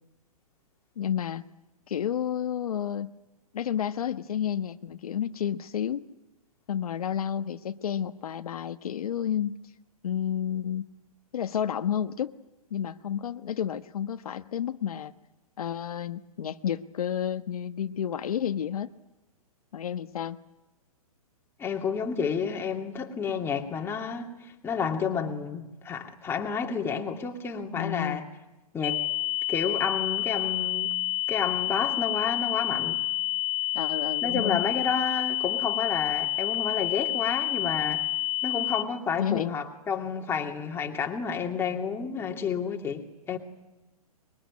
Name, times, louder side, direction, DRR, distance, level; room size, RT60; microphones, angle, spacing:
voice 1, 1.0-1.4 1.9-3.1 3.5-6.1 6.7-9.6 10.0-10.9 11.3-12.3 12.7-15.1 15.6-18.9 19.7-20.4 27.8-28.3 33.7-34.7 39.2-39.6, left 9 dB, 70° left, 1.2 m, -31 dB
voice 2, 21.6-24.3 24.6-28.2 28.7-29.0 29.5-30.9 31.3-33.0 34.2-38.0 38.4-43.4, left 6 dB, 10° left, 2.6 m, -30 dB
sound 1, 28.8-38.8, left 33 dB, 45° left, 2.5 m, -29 dB
25.0 x 23.0 x 9.7 m
hypercardioid pair, 145°, 20 cm